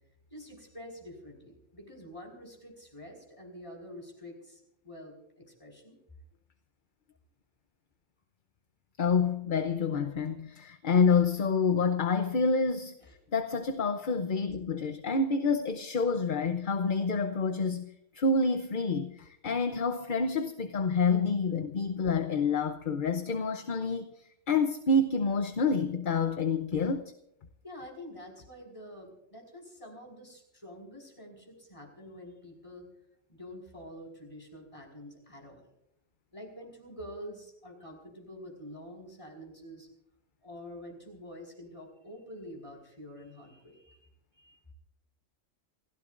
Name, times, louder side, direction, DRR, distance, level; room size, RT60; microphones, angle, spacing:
voice 1, 0.3-6.0 13.0-13.1 27.6-32.8 33.3-35.7 36.3-39.9 40.4-44.0 44.3-44.6, equal, 25° left, 4.9 m, -47 dB
voice 2, 9.0-12.9 13.3-24.1 24.5-27.1, left 4 dB, 45° left, 0.9 m, -28 dB
28.0 x 15.5 x 2.5 m
omnidirectional pair, 1.3 m